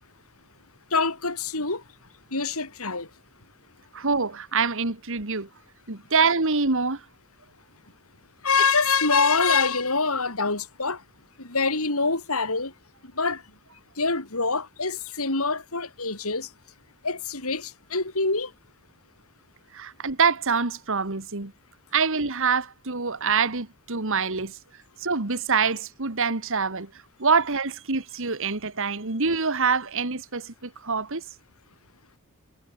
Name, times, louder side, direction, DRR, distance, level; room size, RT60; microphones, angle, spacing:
voice 1, 0.9-1.8 2.3-3.1 8.4-11.0 11.4-12.7 13.2-13.4 14.0-16.5 17.0-18.5, left 4 dB, 75° left, 5.4 m, -25 dB
voice 2, 3.9-5.5 5.9-7.0 19.7-21.5 21.9-24.6 25.0-26.9 27.2-31.2, right 5 dB, 60° right, 2.1 m, -25 dB
head